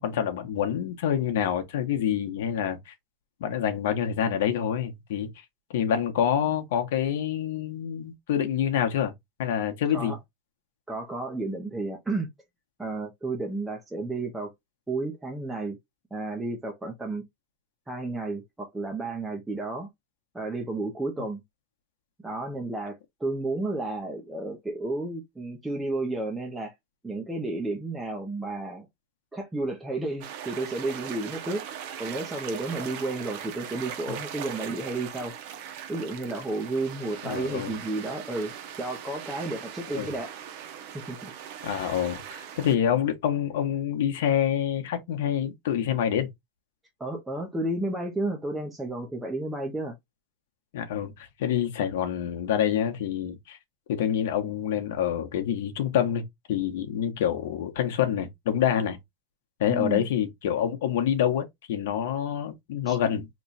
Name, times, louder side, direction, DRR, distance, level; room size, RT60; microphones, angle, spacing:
voice 1, 0.0-2.9 3.4-5.3 5.7-9.1 9.4-10.1 37.2-37.8 39.9-40.1 41.6-46.3 50.7-53.6 53.9-59.0 59.6-63.3, left 9 dB, 80° left, 0.8 m, -27 dB
voice 2, 10.9-12.3 12.8-14.5 14.9-15.8 16.1-17.2 17.9-19.9 20.3-21.4 22.2-26.7 27.0-28.9 29.3-31.7 32.0-35.4 35.9-40.3 41.1-41.3 47.0-50.0 59.7-60.1 62.9-63.0, right 2 dB, 5° right, 0.6 m, -32 dB
sound 1, 30.2-42.8, right 9 dB, 55° right, 0.6 m, -40 dB
3.0 x 2.2 x 4.0 m
supercardioid pair, 160°, 0 cm